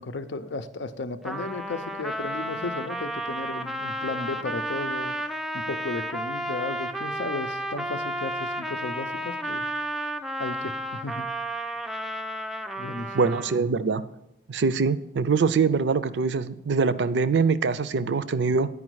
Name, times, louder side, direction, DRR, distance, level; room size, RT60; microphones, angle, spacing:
voice 1, 0.0-9.6 10.4-11.3 12.8-13.3 18.0-18.1, left 3 dB, 85° left, 10 dB, 0.6 m, -34 dB
Trumpet, 1.2-13.7, right 1 dB, ahead, 0.3 m, -32 dB
voice 2, 13.1-14.0 14.5-18.7, right 4 dB, 75° right, 15 dB, 0.4 m, -23 dB
9.7 x 5.0 x 6.2 m, 0.87 s
head